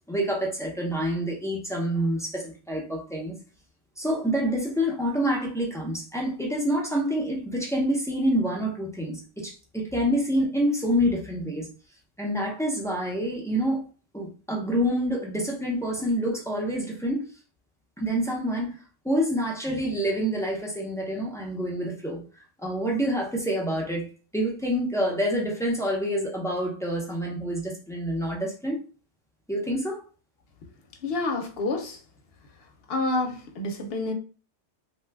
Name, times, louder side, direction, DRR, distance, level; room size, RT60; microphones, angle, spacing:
voice 1, 0.1-3.3 4.0-11.7 12.2-13.8 14.1-17.3 18.0-18.8 19.0-22.2 22.6-24.1 24.3-28.8 29.5-30.0, equal, 5° left, 0.4 m, -27 dB
voice 2, 31.0-32.0 32.9-34.1, left 2 dB, 60° left, 0.8 m, -28 dB
2.9 x 2.2 x 3.3 m
omnidirectional pair, 1.2 m